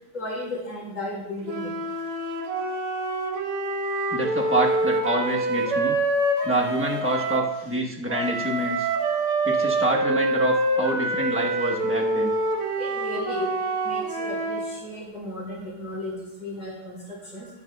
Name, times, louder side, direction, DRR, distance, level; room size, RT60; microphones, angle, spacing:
voice 1, 0.1-1.7 12.8-13.5 13.8-17.0 17.3-17.5, left 1 dB, 40° left, -6 dB, 5.2 m, -34 dB
sound 1, 1.4-7.5 8.1-14.7, right 2 dB, 80° right, 2.1 m, -26 dB
voice 2, 4.1-6.0 6.4-8.9 9.4-12.3, right 1 dB, 15° right, -1 dB, 0.5 m, -26 dB
14.5 x 11.0 x 2.3 m, 0.92 s
omnidirectional pair, 2.4 m